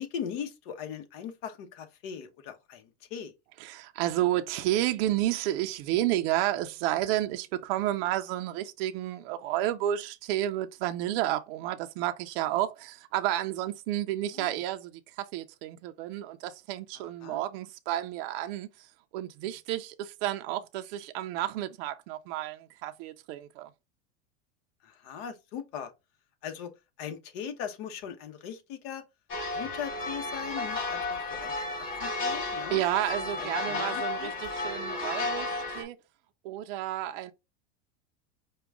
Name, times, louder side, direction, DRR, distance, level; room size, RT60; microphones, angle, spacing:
voice 1, 0.0-3.3 14.3-14.6 16.9-17.4 24.8-25.9 26.4-26.7 27.0-29.0 29.5-32.8 33.3-34.3, left 8 dB, 50° left, 1.0 m, -39 dB
voice 2, 3.6-23.7 32.7-36.0 36.4-37.3, right 13 dB, 55° right, 0.5 m, -31 dB
sound 1, 29.3-35.8, left 3 dB, 35° left, 1.4 m, -33 dB
4.8 x 2.2 x 3.5 m
supercardioid pair, 145°, 36 cm